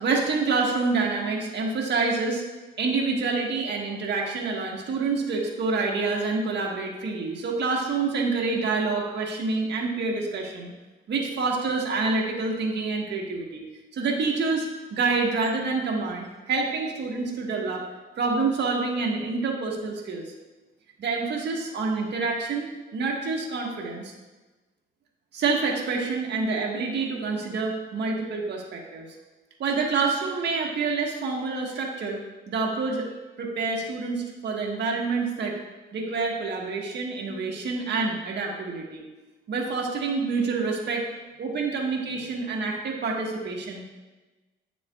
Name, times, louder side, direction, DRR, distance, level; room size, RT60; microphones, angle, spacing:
voice 1, 0.0-2.4 2.8-10.7 11.1-13.6 13.9-17.8 18.2-20.2 21.0-22.7 22.9-24.1 25.3-29.0 29.6-32.2 32.5-33.1 33.4-35.6 35.9-39.0 39.5-41.1 41.4-43.8, right 4 dB, 60° right, -1 dB, 1.4 m, -27 dB
9.1 x 6.9 x 2.4 m, 1.2 s
cardioid pair, 90°, 20 cm